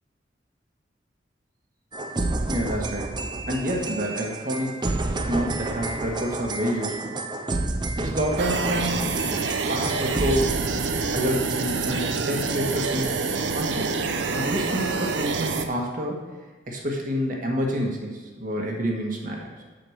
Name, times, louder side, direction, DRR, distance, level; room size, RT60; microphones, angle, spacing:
sound 1, 1.9-13.3, right 2 dB, 25° right, 0.5 m, -31 dB
voice 1, 2.5-3.1 3.5-4.7 5.3-7.2 8.0-9.1 9.7-10.6 11.1-14.0 14.3-16.2 16.7-19.6, equal, 45° right, 0 dB, 1.6 m, -28 dB
sound 2, 8.4-15.7, right 4 dB, 80° right, 0.7 m, -27 dB
7.8 x 6.5 x 6.5 m, 1.3 s
head